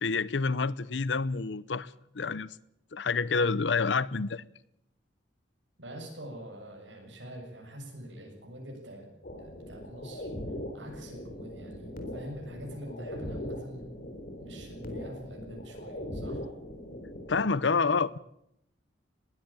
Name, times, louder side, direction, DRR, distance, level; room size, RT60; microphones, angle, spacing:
voice 1, 0.0-2.5 2.9-4.4 17.3-18.2, left 4 dB, 70° left, 0.7 m, -28 dB
voice 2, 5.8-9.1 9.4-10.3 10.7-13.8 14.4-16.4, equal, 80° right, 7.3 m, -44 dB
sound 1, 9.2-17.5, left 1 dB, 50° left, 4.0 m, -40 dB
21.0 x 16.0 x 8.8 m
head